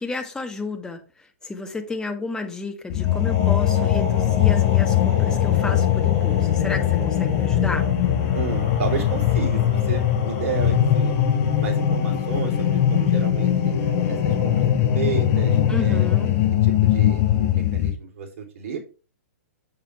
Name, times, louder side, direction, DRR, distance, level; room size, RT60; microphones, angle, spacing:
voice 1, 0.0-7.9 15.7-16.4, left 3 dB, 10° left, 1.5 m, -32 dB
sound 1, 2.9-17.9, left 10 dB, 40° left, 4.5 m, -20 dB
voice 2, 8.3-11.1 11.6-13.7 14.1-16.1 16.6-18.8, right 7 dB, 55° right, 3.3 m, -32 dB
7.4 x 6.6 x 3.4 m
hypercardioid pair, 120°, 8 cm